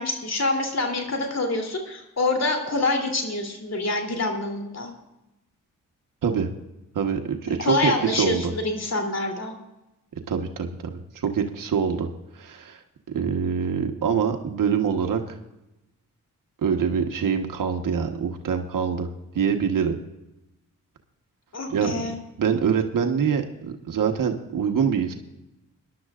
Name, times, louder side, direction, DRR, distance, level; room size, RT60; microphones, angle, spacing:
voice 1, 0.0-4.9 7.5-9.5 21.5-22.1, left 2 dB, 50° left, 3 dB, 3.2 m, -26 dB
voice 2, 6.9-8.5 10.3-12.1 12.3-12.8 13.1-15.4 16.6-19.1 19.3-20.0 21.7-25.1, right 7 dB, 70° right, 5 dB, 1.3 m, -25 dB
21.5 x 11.5 x 2.5 m, 0.93 s
cardioid pair, 70°, 33 cm